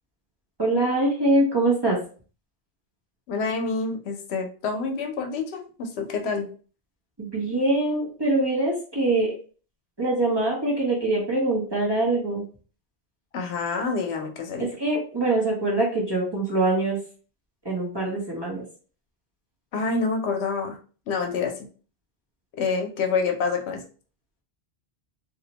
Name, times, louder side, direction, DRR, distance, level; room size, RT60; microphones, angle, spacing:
voice 1, 0.6-2.0 7.2-9.3 10.0-12.4 14.8-17.0 17.6-18.6, right 2 dB, 25° right, -4 dB, 0.7 m, -23 dB
voice 2, 3.3-6.5 13.3-14.7 19.7-20.8 21.1-21.5 22.5-23.8, left 4 dB, 80° left, 4 dB, 0.8 m, -27 dB
2.5 x 2.0 x 2.8 m, 0.40 s
omnidirectional pair, 1.1 m